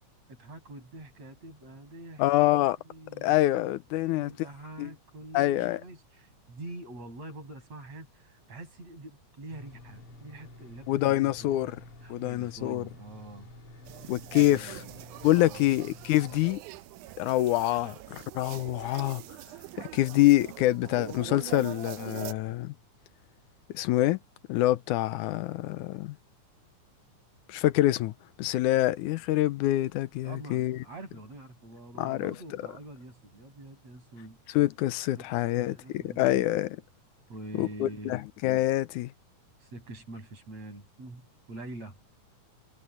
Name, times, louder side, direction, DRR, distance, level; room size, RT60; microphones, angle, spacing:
voice 1, 0.3-2.2 2.8-3.6 3.9-11.5 12.0-13.5 14.0-15.0 15.3-15.6 30.2-34.4 35.1-36.5 37.3-38.2 39.6-42.0, right 2 dB, 55° right, 7.8 m, -45 dB
voice 2, 2.2-2.8 3.2-4.3 4.8-4.9 5.3-5.8 10.9-11.8 12.1-12.8 14.1-14.8 15.2-16.6 17.2-19.2 19.8-22.7 23.7-24.2 24.5-26.2 27.5-30.8 32.0-32.3 34.5-36.8 37.6-39.1, left 15 dB, 85° left, 2.2 m, -26 dB
sound 1, 9.5-16.5, left 1 dB, 45° left, 4.0 m, -49 dB
sound 2, 13.8-22.3, right 17 dB, 85° right, 2.1 m, -43 dB
omnidirectional pair, 3.5 m